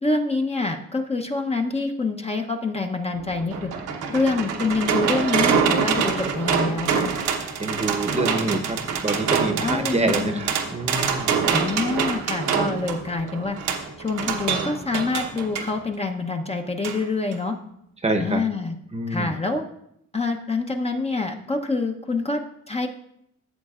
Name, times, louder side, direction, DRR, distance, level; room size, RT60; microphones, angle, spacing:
voice 1, 0.0-3.7 4.1-7.1 9.6-10.4 11.5-13.6 14.0-17.6 18.2-18.7 19.1-19.6 20.1-22.4 22.7-22.9, left 3 dB, 20° left, 4 dB, 0.7 m, -26 dB
sound 1, 3.1-15.7 16.8-17.0 17.3-17.4, right 6 dB, 85° right, 1.1 m, -25 dB
voice 2, 7.6-11.5 18.0-18.4 18.9-19.3, right 2 dB, 20° right, 5 dB, 0.9 m, -26 dB
13.0 x 7.6 x 2.4 m, 0.76 s
cardioid pair, 90°, 30 cm